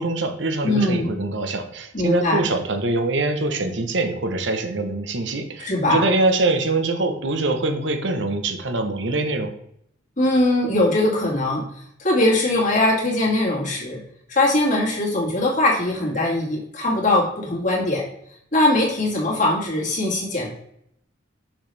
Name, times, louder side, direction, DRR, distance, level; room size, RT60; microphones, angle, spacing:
voice 1, 0.0-9.5, right 2 dB, 65° right, 7 dB, 1.0 m, -23 dB
voice 2, 0.6-1.2 1.9-2.5 5.6-6.1 10.2-11.6 12.0-14.0 14.3-18.0 18.5-20.5, left 1 dB, 40° left, -4 dB, 2.2 m, -21 dB
6.3 x 6.0 x 3.3 m, 0.72 s
head